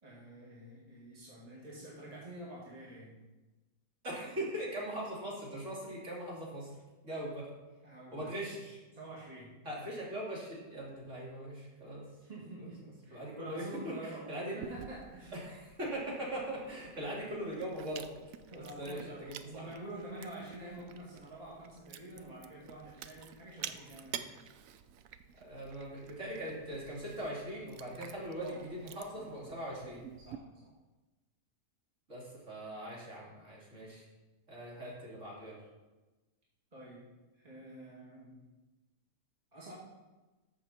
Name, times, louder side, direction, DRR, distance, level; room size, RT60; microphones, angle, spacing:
voice 1, 0.0-3.2 7.8-8.3 8.9-9.6 12.2-15.3 18.5-24.3 28.4-28.6 29.1-29.6 30.2-30.8 36.7-38.5 39.5-39.7, right 1 dB, 25° right, -6 dB, 2.3 m, -48 dB
voice 2, 4.0-6.7 7.0-7.5 8.1-8.8 9.6-12.0 13.1-14.5 15.3-18.1 18.5-19.6 25.4-30.0 32.1-34.0 34.5-35.6, right 1 dB, 45° right, -5 dB, 3.4 m, -41 dB
Chewing mastication, 14.6-30.4, right 9 dB, 65° right, 0.9 m, -50 dB
13.5 x 6.6 x 4.3 m, 1.1 s
omnidirectional pair, 1.7 m